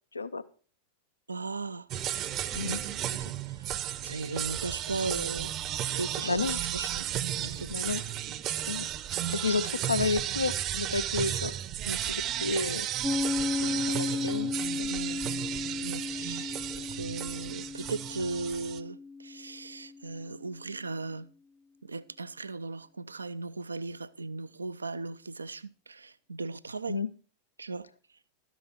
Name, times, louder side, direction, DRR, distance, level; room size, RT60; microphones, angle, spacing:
voice 1, 0.1-0.4 2.5-2.8 6.3-6.6 7.7-8.0 8.7-8.9 9.3-11.5 12.1-12.9 13.6-14.5 14.8-14.9 26.9-27.1, left 4 dB, 80° left, 0.6 m, -31 dB
voice 2, 1.3-1.9 2.5-7.1 7.4-7.8 11.8-12.0 14.9-15.2 15.8-16.6 16.9-21.3 21.8-27.0 27.6-27.9, right 3 dB, 75° right, 0.5 m, -38 dB
sound 1, 1.9-18.8, right 11 dB, 35° right, 0.7 m, -34 dB
Piano, 13.0-20.3, left 4 dB, 5° left, 0.5 m, -34 dB
13.0 x 10.0 x 4.4 m
figure-of-eight pair, 90°, 0 cm